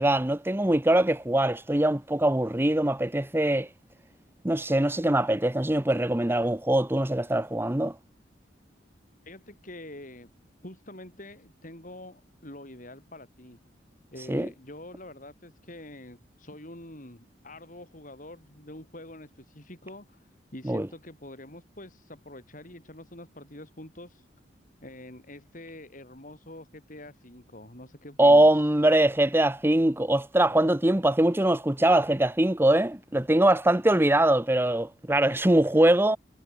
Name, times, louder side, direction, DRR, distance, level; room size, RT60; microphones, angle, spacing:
voice 1, 0.0-3.7 4.4-7.9 14.3-14.5 20.7-20.9 28.2-36.2, right 1 dB, 10° right, 0.9 m, -22 dB
voice 2, 9.2-10.3 10.6-13.6 14.1-24.3 24.8-28.5, left 1 dB, 45° left, 7.6 m, -45 dB
head